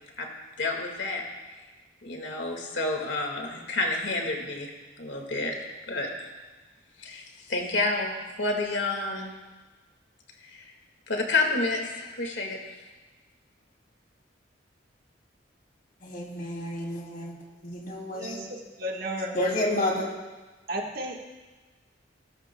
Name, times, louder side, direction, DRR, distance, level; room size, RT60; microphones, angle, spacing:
voice 1, 0.6-1.2 2.0-4.7 5.0-5.5 5.9-6.3 7.0-9.3 10.5-10.7 11.1-12.6, left 2 dB, 75° left, 2 dB, 1.8 m, -29 dB
voice 2, 16.0-17.4 17.6-18.4 19.3-20.1, left 1 dB, 50° left, -1 dB, 2.8 m, -30 dB
voice 3, 18.1-19.4 20.7-21.3, right 1 dB, 50° right, 1 dB, 1.4 m, -34 dB
18.5 x 13.0 x 2.2 m, 1.3 s
head